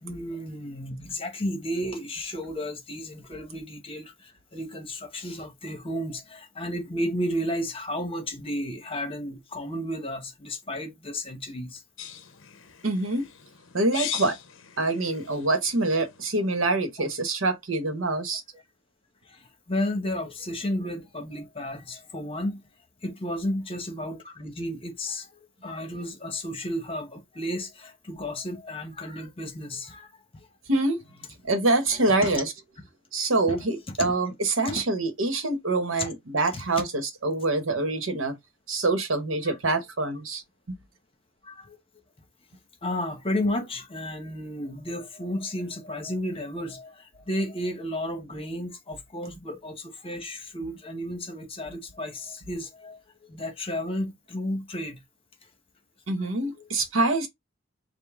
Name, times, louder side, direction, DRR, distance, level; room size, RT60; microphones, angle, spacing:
voice 1, 0.0-11.8 19.3-22.6 23.0-30.1 30.3-30.5 32.2-32.3 33.5-33.6 34.0-34.1 34.7-34.8 36.0-36.1 36.5-36.6 39.5-39.6 41.4-41.8 42.8-53.0 53.3-55.0 56.6-56.7, left 1 dB, 25° left, 1.0 m, -33 dB
sound 1, 12.0-16.5, left 9 dB, 65° left, 0.6 m, -39 dB
voice 2, 12.8-13.2 13.7-14.4 14.8-18.4 30.7-31.0 31.4-32.5 33.1-38.3 38.7-40.4 56.1-57.3, right 2 dB, 70° right, 1.0 m, -25 dB
5.1 x 2.1 x 3.5 m
head